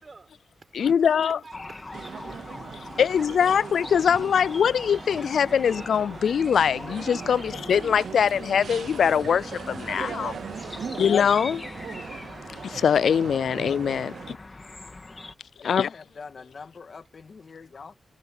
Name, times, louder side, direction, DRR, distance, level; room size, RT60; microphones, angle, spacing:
voice 1, 0.0-2.9 3.2-3.6 7.2-7.4 10.5-11.0, right 3 dB, 35° right, 6.5 m, -50 dB
voice 2, 0.7-1.4 3.0-10.4 11.0-11.6 12.6-14.4 15.6-15.9, left 7 dB, 80° left, 0.3 m, -22 dB
sound 1, 1.5-15.3, left 3 dB, 25° left, 2.4 m, -41 dB
sound 2, 1.9-14.4, right 7 dB, 75° right, 0.8 m, -39 dB
Train, 2.7-14.6, equal, ahead, 5.0 m, -52 dB
voice 3, 15.6-17.9, left 5 dB, 50° left, 2.0 m, -43 dB
wide cardioid pair, 120°, 0 cm